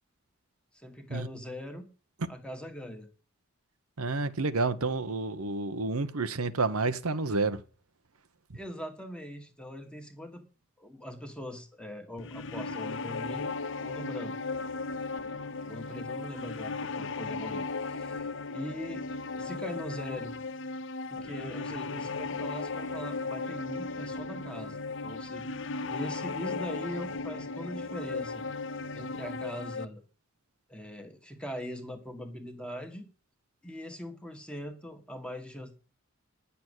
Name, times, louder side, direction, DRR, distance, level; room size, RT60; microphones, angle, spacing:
voice 1, 0.7-1.9 2.3-3.1 8.5-10.4 10.8-13.5 13.8-14.3 15.7-18.3 18.5-19.1 19.3-20.3 21.1-28.4 28.9-30.0 30.7-33.1 33.6-35.7, equal, 5° left, 1.6 m, -41 dB
voice 2, 4.0-7.6 8.5-8.6, right 3 dB, 85° right, 1.0 m, -29 dB
sound 1, 12.2-29.9, left 3 dB, 55° left, 0.7 m, -36 dB
10.5 x 6.9 x 8.1 m
head